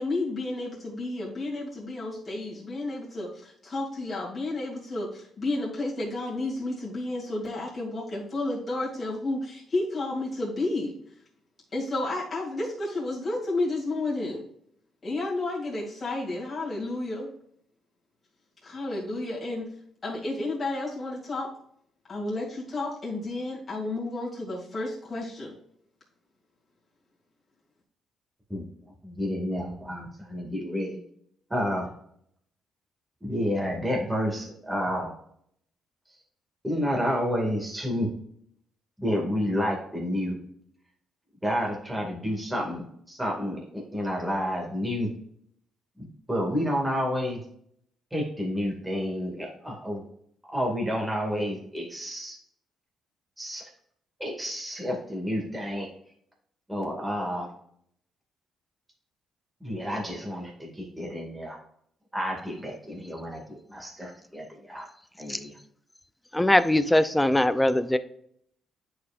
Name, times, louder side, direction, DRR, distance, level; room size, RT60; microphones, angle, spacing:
voice 1, 0.0-10.9 11.7-14.4 15.0-17.3 18.6-19.7 20.0-21.5 22.1-25.5, left 2 dB, 30° left, 2.7 m, -31 dB
voice 2, 29.0-31.0 31.5-31.9 33.2-35.1 36.6-38.1 39.0-40.4 41.4-45.1 46.0-47.4 48.1-50.0 50.5-52.4 53.4-53.6 54.2-55.9 56.7-57.5 59.6-61.6 62.1-64.9 65.2-65.5, equal, 10° right, 2.1 m, -30 dB
voice 3, 66.3-68.0, left 1 dB, 10° left, 0.5 m, -21 dB
9.7 x 4.8 x 2.5 m
cardioid pair, 90°, 0 cm